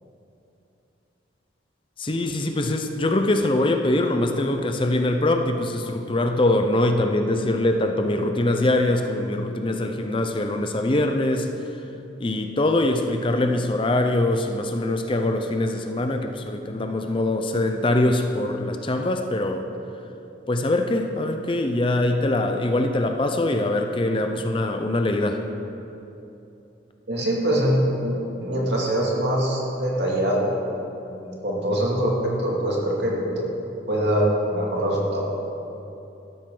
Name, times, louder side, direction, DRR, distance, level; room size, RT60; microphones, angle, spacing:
voice 1, 2.0-11.8 12.2-19.7 20.5-25.4, left 1 dB, 25° left, 5 dB, 0.6 m, -23 dB
voice 2, 27.1-30.6 31.1-33.5 33.9-35.3, right 1 dB, 65° right, -3 dB, 2.4 m, -23 dB
13.5 x 12.0 x 3.9 m, 2.9 s
head